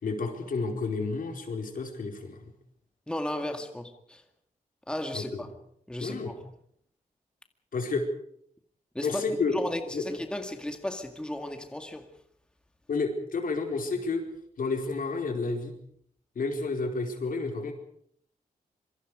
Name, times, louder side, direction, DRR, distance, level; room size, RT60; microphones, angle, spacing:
voice 1, 0.0-2.4 5.1-5.4 6.0-6.3 7.7-8.1 9.0-9.5 9.9-10.0 12.9-14.2 14.6-15.7 16.3-17.7, left 4 dB, 75° left, 4.6 m, -30 dB
voice 2, 3.1-4.2 4.9-5.6 5.9-6.4 8.9-9.2 9.5-12.1, left 1 dB, 5° left, 2.1 m, -34 dB
26.0 x 24.5 x 5.0 m
wide cardioid pair, 140°, 14 cm